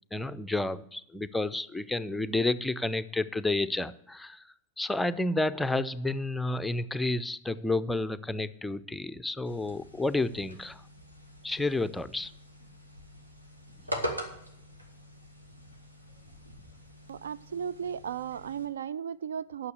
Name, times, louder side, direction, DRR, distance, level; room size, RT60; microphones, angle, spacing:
voice 1, 0.1-10.8 11.4-12.3, left 2 dB, 5° left, 14 dB, 0.5 m, -30 dB
sound 1, 9.4-18.6, equal, 85° right, 1.7 m, -42 dB
voice 2, 17.1-19.7, right 8 dB, 65° right, 17 dB, 0.3 m, -35 dB
9.6 x 6.5 x 8.0 m, 0.72 s
figure-of-eight pair, 90°, 0 cm